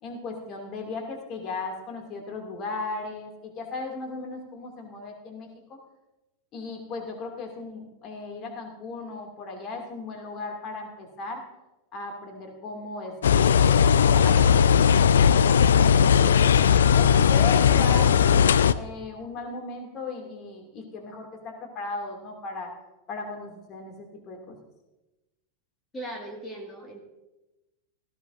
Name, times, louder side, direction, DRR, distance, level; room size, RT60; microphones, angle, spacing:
voice 1, 0.0-5.8 6.5-11.4 11.9-16.4 16.9-22.7 23.1-24.6, left 3 dB, 35° left, 2 dB, 2.4 m, -36 dB
sound 1, 13.2-18.7, left 7 dB, 65° left, 0.4 m, -18 dB
voice 2, 25.9-27.0, right 1 dB, 15° left, 1 dB, 2.0 m, -38 dB
17.5 x 14.5 x 2.6 m, 1.0 s
figure-of-eight pair, 90°, 0 cm